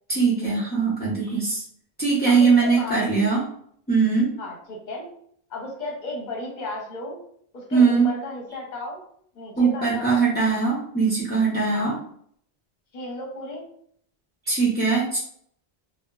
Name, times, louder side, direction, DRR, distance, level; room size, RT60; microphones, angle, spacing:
voice 1, 0.1-1.6 2.0-3.4 3.9-4.3 7.7-8.1 9.6-12.0 14.5-15.2, right 5 dB, 15° left, -8 dB, 0.3 m, -21 dB
voice 2, 2.2-3.0 4.4-5.1 5.5-7.2 7.5-9.0 9.3-10.2 11.7-12.0 12.9-13.7, left 2 dB, 50° left, 0 dB, 0.8 m, -34 dB
2.8 x 2.1 x 2.3 m, 0.64 s
omnidirectional pair, 1.1 m